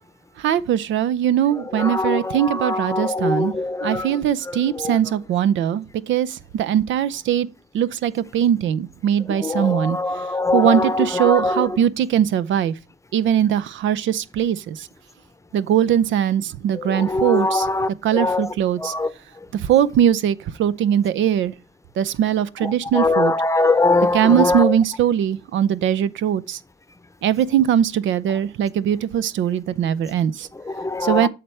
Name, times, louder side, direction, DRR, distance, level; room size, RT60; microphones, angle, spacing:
voice 1, 0.4-3.5 3.8-7.5 7.7-10.0 10.5-12.7 13.1-14.9 15.5-17.7 18.0-18.9 19.5-21.5 22.0-23.3 24.1-26.6 27.2-30.5 31.0-31.3, right 9 dB, 75° right, 0.5 m, -20 dB
voice 2, 1.7-4.1 4.5-5.0 9.3-11.8 16.7-18.5 18.8-19.1 22.6-24.8 30.7-31.3, left 3 dB, 15° left, 0.7 m, -22 dB
8.6 x 6.6 x 3.3 m
cardioid pair, 90°, 20 cm